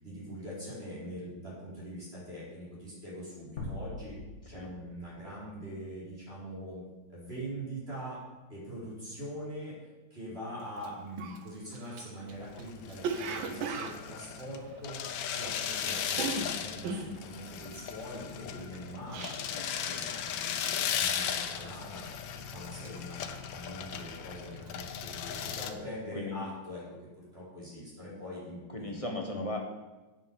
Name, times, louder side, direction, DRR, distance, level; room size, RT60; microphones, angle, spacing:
voice 1, 0.0-4.2 4.5-6.8 7.1-8.2 8.5-19.3 19.6-22.0 22.5-26.8 27.2-29.0 29.3-29.4, equal, 30° right, -7 dB, 4.6 m, -43 dB
sound 1, 3.6-6.0, left 2 dB, 40° left, 1.7 m, -43 dB
Cough, 10.8-10.9 11.2-15.6 15.9-19.7 20.0-20.4 20.6-21.1 21.6-22.2 22.5-24.2 24.5-24.8, right 4 dB, 90° right, 1.7 m, -38 dB
sound 2, 12.3-25.7, left 8 dB, 85° left, 1.5 m, -37 dB
voice 2, 19.5-20.1 26.1-26.4 28.7-29.6, left 2 dB, 20° left, 0 dB, 1.1 m, -38 dB
8.7 x 7.6 x 7.0 m, 1.1 s
omnidirectional pair, 2.1 m